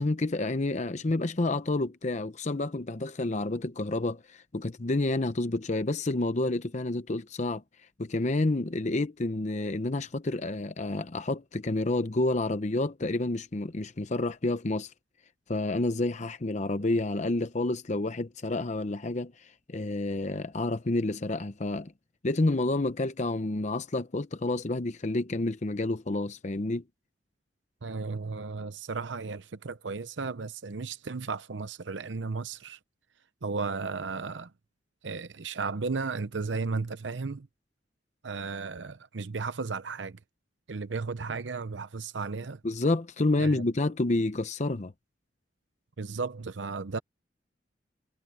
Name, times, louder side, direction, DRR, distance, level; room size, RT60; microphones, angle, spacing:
voice 1, 0.0-7.6 8.0-14.9 15.5-21.9 22.2-26.8 42.6-44.9, left 2 dB, 40° left, 0.7 m, -29 dB
voice 2, 27.8-32.8 33.4-34.5 35.0-37.5 38.2-40.2 40.7-42.6 43.4-43.6 46.0-47.0, right 4 dB, 85° right, 0.7 m, -34 dB
head